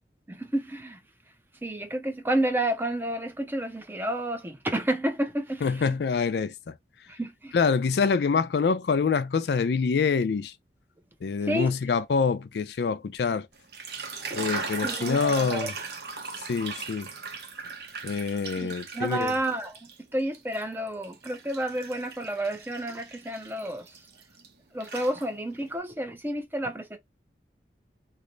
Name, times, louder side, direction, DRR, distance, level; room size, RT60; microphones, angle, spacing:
voice 1, 0.3-1.0 1.6-6.0 7.1-7.6 11.5-11.7 14.3-14.4 14.8-15.9 18.6-24.0 24.7-27.0, right 1 dB, 10° right, 0.4 m, -30 dB
voice 2, 5.6-6.8 7.5-10.5 11.2-13.5 14.3-15.7 16.5-17.1 18.0-19.3, left 5 dB, 70° left, 0.4 m, -26 dB
sound 1, 13.6-20.0 20.3-24.5 24.8-25.6, right 4 dB, 65° right, 0.7 m, -38 dB
3.2 x 2.0 x 3.8 m
head